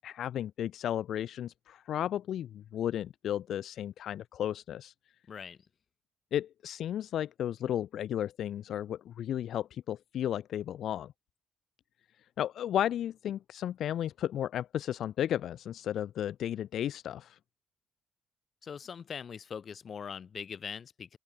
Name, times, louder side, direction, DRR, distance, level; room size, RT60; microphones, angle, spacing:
voice 1, 0.0-4.9 6.3-11.1 12.4-17.4, left 11 dB, 70° left, 0.8 m, -34 dB
voice 2, 5.3-5.6 18.6-21.2, left 7 dB, 50° left, 3.9 m, -42 dB
open air
cardioid pair, 90°, 0 cm